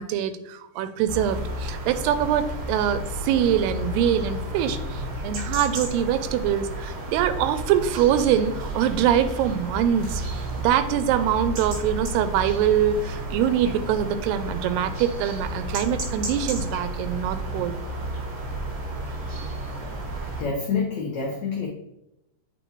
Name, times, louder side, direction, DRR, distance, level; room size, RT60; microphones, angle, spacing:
voice 1, 0.0-17.8, right 9 dB, 90° right, 11 dB, 2.6 m, -24 dB
sound 1, 1.1-20.4, right 1 dB, 60° right, 3.4 m, -32 dB
voice 2, 20.4-21.7, left 5 dB, 85° left, -2 dB, 1.5 m, -27 dB
8.0 x 4.5 x 3.0 m, 0.85 s
omnidirectional pair, 4.5 m